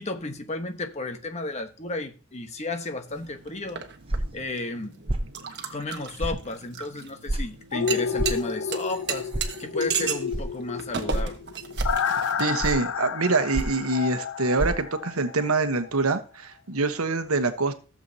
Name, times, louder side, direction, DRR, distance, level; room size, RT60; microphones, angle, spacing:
voice 1, 0.0-3.8 4.3-5.0 5.7-9.3 9.6-11.4, left 2 dB, 30° left, 1.1 m, -33 dB
sound 1, 3.1-12.8, right 7 dB, 50° right, 1.2 m, -36 dB
sound 2, 4.1-4.4 5.1-5.3 6.2-6.4 7.3-7.4 8.2-8.4 9.3-9.5 10.3-10.4 11.1-11.3 11.8-12.0 12.6-12.9 13.5-13.8 14.6-14.7, right 1 dB, 25° right, 0.8 m, -27 dB
sound 3, 7.7-15.6 15.9-16.0, left 6 dB, 70° left, 0.5 m, -31 dB
voice 2, 12.4-17.7, right 3 dB, 80° right, 1.1 m, -25 dB
15.0 x 7.5 x 2.8 m
head